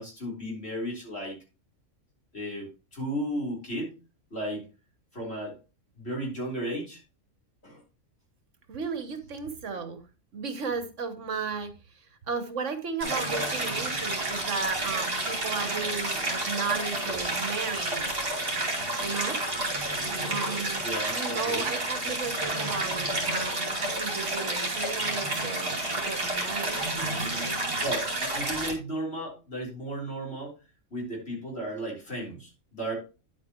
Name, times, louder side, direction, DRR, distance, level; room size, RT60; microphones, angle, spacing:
voice 1, 0.0-1.4 2.3-4.0 4.3-4.7 5.1-5.6 6.0-7.0 7.6-7.8 20.8-21.7 27.8-30.5 30.9-33.0, right 1 dB, 50° left, -2 dB, 4.0 m, -34 dB
voice 2, 8.7-10.0 10.3-18.1 19.0-19.4 20.3-27.6, right 5 dB, 65° right, 9 dB, 1.3 m, -35 dB
Stream, 13.0-28.7, right 1 dB, 45° right, 2.9 m, -30 dB
9.8 x 8.3 x 3.0 m, 0.31 s
omnidirectional pair, 1.4 m